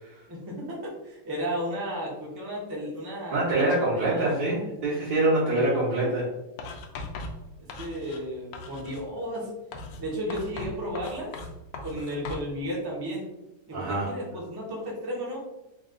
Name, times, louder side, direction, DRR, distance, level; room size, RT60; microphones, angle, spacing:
voice 1, 0.3-4.4 7.8-9.5 10.0-11.3 11.8-13.3 13.7-15.4, equal, 25° right, -4 dB, 0.5 m, -34 dB
voice 2, 3.3-6.3 13.7-14.1, right 2 dB, 75° right, -9 dB, 1.8 m, -25 dB
Writing, 6.6-8.3 8.5-9.1 9.7-12.5, left 3 dB, 75° left, 1.2 m, -39 dB
4.0 x 2.3 x 3.7 m, 0.95 s
omnidirectional pair, 2.0 m